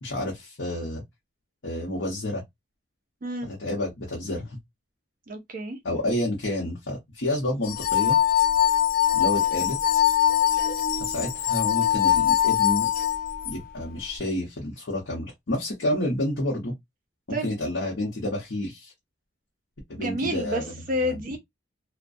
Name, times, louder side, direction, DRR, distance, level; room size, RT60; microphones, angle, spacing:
voice 1, 0.0-1.0 1.6-2.4 3.4-4.6 5.8-8.2 9.1-10.1 11.0-12.9 13.4-16.7 17.3-18.9 19.9-21.2, left 1 dB, 65° left, 0.7 m, -29 dB
voice 2, 5.3-5.8 17.3-17.5 20.0-21.4, equal, 45° right, 0.5 m, -29 dB
sound 1, 7.7-13.5, left 11 dB, 45° left, 0.3 m, -22 dB
2.3 x 2.1 x 2.5 m
head